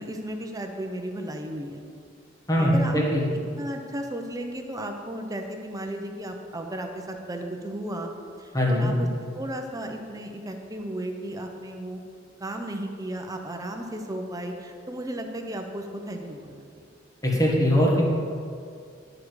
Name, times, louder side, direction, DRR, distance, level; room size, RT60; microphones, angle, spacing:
voice 1, 0.0-1.8 2.6-3.0 3.6-8.1 8.4-9.1 9.3-12.0 12.4-16.6, right 1 dB, 20° right, 4 dB, 0.7 m, -34 dB
voice 2, 2.5-3.2 8.5-8.9 17.2-18.0, equal, 20° left, -3 dB, 1.6 m, -21 dB
11.5 x 4.9 x 4.8 m, 2.3 s
head